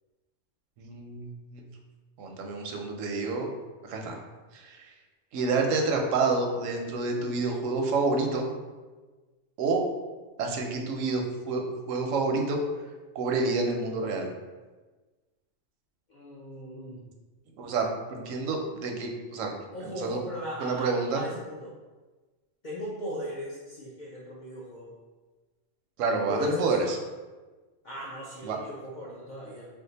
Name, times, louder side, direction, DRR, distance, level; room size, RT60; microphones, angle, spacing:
voice 1, 0.8-1.6 2.2-3.5 3.8-4.2 4.5-4.9 5.3-8.5 9.6-9.9 10.4-12.6 13.1-14.3 17.6-19.5 20.0-20.2 20.6-21.2 26.0-27.0 28.4-28.6, right 3 dB, 85° right, 2 dB, 0.9 m, -28 dB
voice 2, 16.1-17.1 19.7-21.8 22.6-24.9 26.3-27.0 27.8-29.7, left 1 dB, 65° left, -5 dB, 0.4 m, -38 dB
2.6 x 2.3 x 3.8 m, 1.3 s
omnidirectional pair, 1.3 m